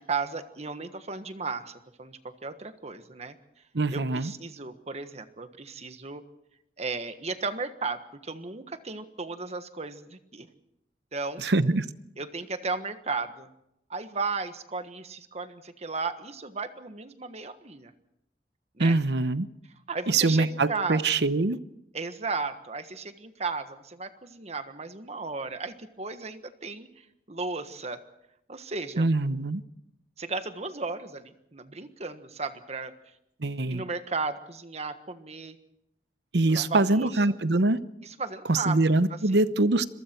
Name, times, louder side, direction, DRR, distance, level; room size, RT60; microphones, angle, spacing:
voice 1, 0.0-3.4 3.9-6.2 6.8-10.5 11.1-11.4 12.2-13.5 13.9-17.9 18.7-19.0 19.9-21.1 21.9-28.0 28.5-29.1 30.2-32.9 33.7-35.6 36.5-37.2 38.0-38.8 39.1-39.4, right 4 dB, 40° right, 9 dB, 1.5 m, -35 dB
voice 2, 3.7-4.3 11.4-11.9 18.8-19.5 20.1-21.6 29.0-29.6 33.4-33.8 36.3-37.8 38.5-39.9, right 2 dB, 70° right, 14 dB, 0.9 m, -24 dB
27.0 x 22.5 x 4.6 m, 0.79 s
head